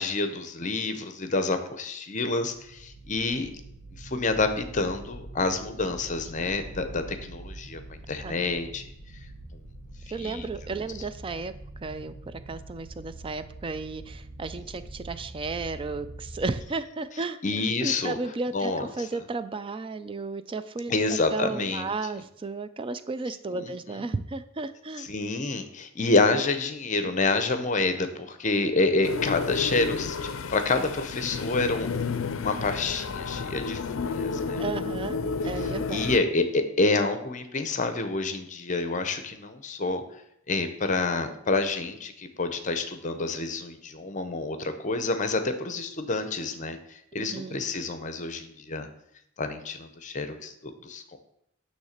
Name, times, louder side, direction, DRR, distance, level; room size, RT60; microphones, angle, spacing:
voice 1, 0.0-3.5 4.0-7.8 8.1-8.8 10.2-10.4 17.4-18.2 18.5-18.8 20.9-21.9 23.5-23.7 25.1-34.6 35.9-40.0 40.5-48.9 49.4-51.0, left 3 dB, 35° left, 8 dB, 0.7 m, -28 dB
sound 1, 2.5-16.6, right 2 dB, 60° right, 1.3 m, -44 dB
voice 2, 10.1-25.1 34.6-35.2 35.4-36.0 47.2-47.6, right 3 dB, 25° right, 12 dB, 0.4 m, -34 dB
sound 2, 29.0-36.2, left 4 dB, 75° left, 0.5 m, -31 dB
9.5 x 3.2 x 6.5 m, 0.76 s
head